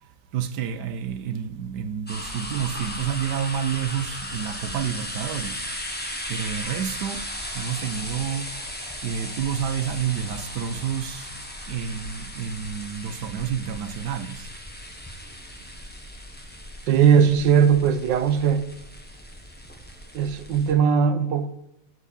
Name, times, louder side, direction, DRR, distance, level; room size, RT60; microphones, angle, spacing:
voice 1, 0.0-5.6 6.3-7.3 7.5-8.5 9.0-11.3 11.7-14.5, right 8 dB, 70° right, 1.3 m, -29 dB
sound 1, 2.1-20.7, left 1 dB, 5° left, 1.2 m, -36 dB
voice 2, 16.9-18.7 20.1-21.5, right 7 dB, 85° right, 1.5 m, -19 dB
13.5 x 4.8 x 8.3 m
omnidirectional pair, 1.9 m